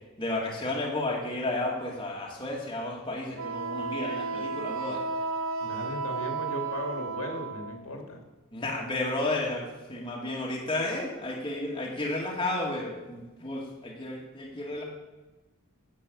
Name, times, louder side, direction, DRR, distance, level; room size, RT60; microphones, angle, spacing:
voice 1, 0.2-5.0 8.5-14.8, left 2 dB, 20° left, -2 dB, 2.2 m, -32 dB
Wind instrument woodwind instrument, 3.3-7.8, right 4 dB, 65° right, 0.9 m, -33 dB
voice 2, 5.6-8.2, left 2 dB, 70° left, 3 dB, 2.5 m, -37 dB
9.9 x 8.3 x 8.6 m, 1.1 s
head